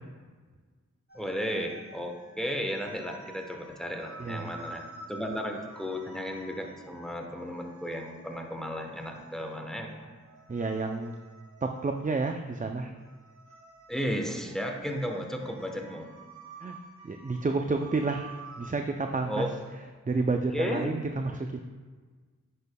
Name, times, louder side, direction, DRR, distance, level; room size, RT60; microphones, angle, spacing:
voice 1, 1.1-9.9 13.9-16.1 19.2-19.5 20.5-20.9, equal, ahead, 2 dB, 1.0 m, -34 dB
sound 1, 1.1-18.6, right 2 dB, 70° right, 1.7 m, -50 dB
voice 2, 4.2-4.5 10.5-11.1 11.6-12.9 16.6-19.5 20.1-21.6, right 3 dB, 25° right, 4 dB, 0.4 m, -30 dB
10.5 x 6.4 x 2.2 m, 1.5 s
wide cardioid pair, 45°, 30 cm